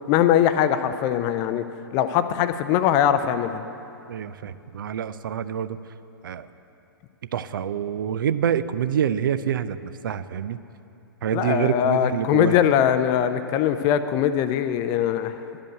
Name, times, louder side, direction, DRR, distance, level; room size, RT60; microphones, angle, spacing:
voice 1, 0.1-1.6 1.9-3.6 11.3-15.3, left 10 dB, 30° left, 11 dB, 0.4 m, -21 dB
voice 2, 4.1-5.8 6.2-6.5 7.3-10.6 11.2-12.6, right 9 dB, 60° right, 14 dB, 0.4 m, -26 dB
11.0 x 5.2 x 7.9 m, 2.8 s
figure-of-eight pair, 115°, 12 cm